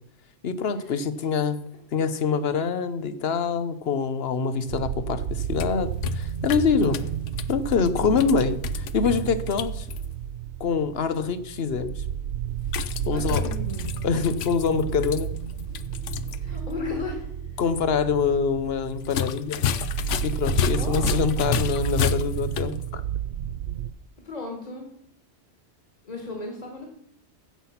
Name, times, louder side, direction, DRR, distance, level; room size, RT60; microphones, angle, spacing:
voice 1, 0.4-1.6 1.9-7.0 7.5-9.9 10.6-12.0 13.1-13.5 14.0-15.3 17.6-19.7 20.2-23.0, left 5 dB, 60° left, 12 dB, 1.1 m, -25 dB
sound 1, 4.7-23.9, right 10 dB, 65° right, 0.8 m, -32 dB
sound 2, 5.3-10.1 12.6-16.4 16.7-16.8 19.0-22.8, left 8 dB, 85° left, 1.0 m, -31 dB
voice 2, 13.1-13.9 16.4-17.3 20.7-21.2 24.2-24.9 26.1-26.9, left 3 dB, 35° left, 1 dB, 2.3 m, -35 dB
15.5 x 5.9 x 5.8 m, 0.75 s
omnidirectional pair, 1.2 m